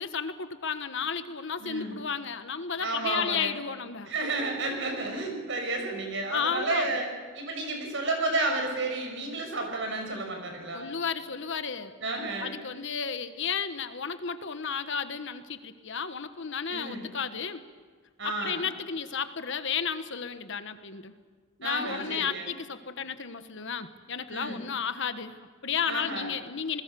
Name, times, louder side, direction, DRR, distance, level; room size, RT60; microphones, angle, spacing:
voice 1, 0.0-4.1 6.3-6.9 10.7-11.9 12.4-17.6 18.2-21.2 21.6-26.8, left 6 dB, 60° left, 10 dB, 1.4 m, -33 dB
voice 2, 1.6-2.0 2.8-3.6 4.1-7.1 7.3-10.9 12.0-12.6 16.7-17.0 18.2-18.7 21.6-22.5 24.3-24.6 25.9-26.3, right 2 dB, 60° right, 3 dB, 6.2 m, -31 dB
28.5 x 21.0 x 7.0 m, 1.5 s
head